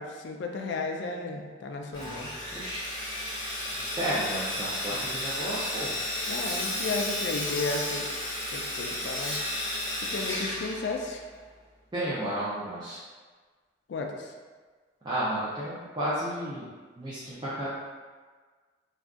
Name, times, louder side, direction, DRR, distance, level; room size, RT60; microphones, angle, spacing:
voice 1, 0.0-2.3 6.3-9.4 10.0-11.2 13.9-14.3, left 3 dB, 70° left, 3 dB, 0.3 m, -34 dB
Sawing, 1.9-11.4, left 1 dB, 25° left, 0.7 m, -33 dB
voice 2, 2.5-2.9 4.0-5.9 11.9-13.0 15.0-16.7 17.0-17.7, right 1 dB, 25° right, -10 dB, 0.4 m, -32 dB
2.5 x 2.3 x 3.5 m, 1.5 s
head